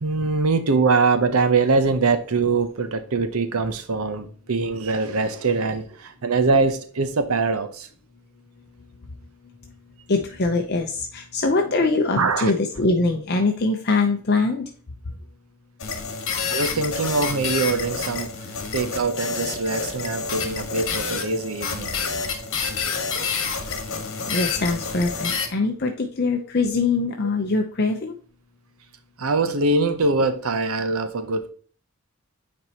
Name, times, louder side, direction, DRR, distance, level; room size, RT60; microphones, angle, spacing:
voice 1, 0.0-7.9 12.2-12.5 16.5-18.3 18.7-22.0 29.2-31.5, right 3 dB, 80° right, 0.8 m, -23 dB
voice 2, 10.1-14.6 24.3-28.1, left 3 dB, 45° left, 0.7 m, -23 dB
sound 1, 15.8-25.5, left 5 dB, 60° left, 1.5 m, -28 dB
9.4 x 4.4 x 2.9 m
head